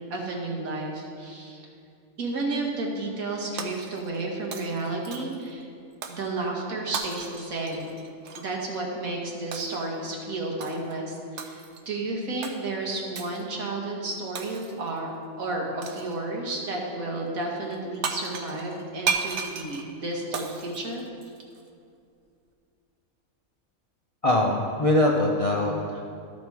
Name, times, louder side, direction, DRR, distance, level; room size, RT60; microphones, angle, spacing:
voice 1, 0.1-1.6 2.2-5.7 6.1-7.9 8.4-15.1 15.4-21.0, right 2 dB, 80° right, -1 dB, 1.8 m, -32 dB
Shatter, 3.6-4.2 4.5-5.5 6.0-6.3 6.9-8.5 9.5-9.9 10.6-10.9 11.4-11.9 12.4-12.6 13.2-13.4 14.4-14.9 15.8-16.2 17.7-17.8 18.0-21.6, right 6 dB, 65° right, 0.9 m, -34 dB
voice 2, 24.2-26.0, left 1 dB, 45° left, -1 dB, 0.4 m, -22 dB
12.5 x 5.1 x 4.6 m, 2.4 s
omnidirectional pair, 1.5 m